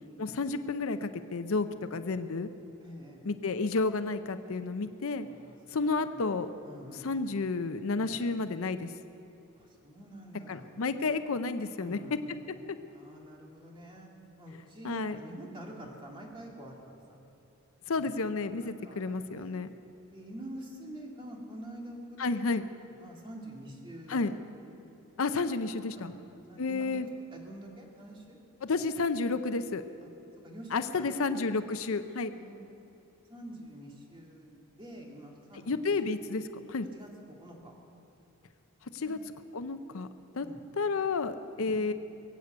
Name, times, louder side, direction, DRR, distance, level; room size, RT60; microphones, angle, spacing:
voice 1, 0.2-2.5 3.3-5.3 5.7-6.5 7.0-8.9 10.5-12.0 14.8-15.2 17.9-19.7 22.2-22.6 24.1-24.3 25.2-26.1 26.6-27.1 28.6-29.8 30.7-32.3 35.7-36.9 38.9-39.2 39.5-40.1 40.3-40.5 40.8-41.9, left 3 dB, 70° left, 10 dB, 0.6 m, -31 dB
voice 2, 2.8-3.3 5.2-5.6 5.8-6.3 6.6-7.1 8.0-8.3 9.6-10.7 11.8-12.2 12.9-14.1 14.4-17.0 17.9-18.1 18.6-19.5 20.1-22.2 22.5-22.6 23.0-24.3 25.9-26.1 26.5-26.8 27.3-28.4 28.7-28.8 30.0-30.1 30.4-31.2 32.3-32.8 33.3-36.2 36.9-37.7 39.0-39.2 40.4-40.6 41.6-41.8, right 1 dB, 20° right, -1 dB, 2.2 m, -47 dB
22.0 x 8.2 x 7.9 m, 2.8 s
head